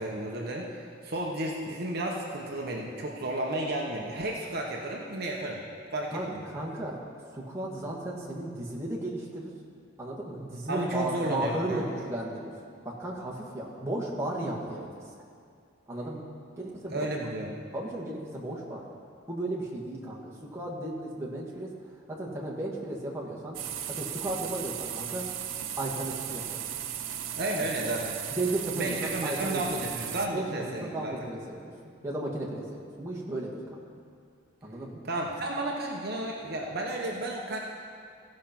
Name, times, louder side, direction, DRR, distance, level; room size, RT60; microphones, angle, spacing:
voice 1, 0.0-5.6 5.9-6.5 10.7-11.8 16.9-17.6 27.3-28.2 28.7-31.2 35.1-37.6, right 1 dB, 55° right, -1 dB, 1.0 m, -32 dB
voice 2, 6.1-7.0 7.3-9.5 10.0-12.5 12.9-14.9 15.1-15.2 15.9-16.3 16.6-17.1 17.7-18.9 19.3-21.7 22.1-23.6 23.9-25.2 25.8-26.6 27.6-27.7 28.3-29.6 30.3-31.7 32.0-32.6 33.0-33.8 34.6-35.0, right 1 dB, 15° right, -5 dB, 1.6 m, -34 dB
sound 1, 23.5-30.3, right 10 dB, 85° right, 0.6 m, -36 dB
16.0 x 5.3 x 5.9 m, 2.3 s
head